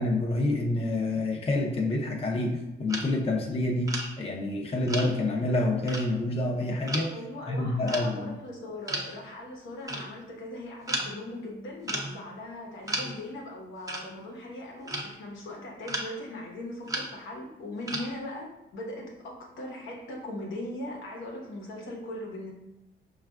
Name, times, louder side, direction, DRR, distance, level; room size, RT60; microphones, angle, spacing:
voice 1, 0.0-3.9 4.2-7.1 7.5-8.3, left 2 dB, 30° left, 0 dB, 0.6 m, -27 dB
sound 1, 2.9-3.4 3.9-4.1 4.9-5.4 5.9-6.1 6.9-7.2 7.9-8.2 8.9-9.2 9.9-10.1 10.9-11.1 11.8-12.2 12.9-13.2 13.9-14.1 14.9-15.2 15.9-16.1 16.9-17.1 17.9-18.1, right 1 dB, 15° right, 0.6 m, -34 dB
voice 2, 7.1-22.5, left 1 dB, 85° left, -1 dB, 0.9 m, -39 dB
5.2 x 2.4 x 2.3 m, 0.93 s
cardioid pair, 90°, 20 cm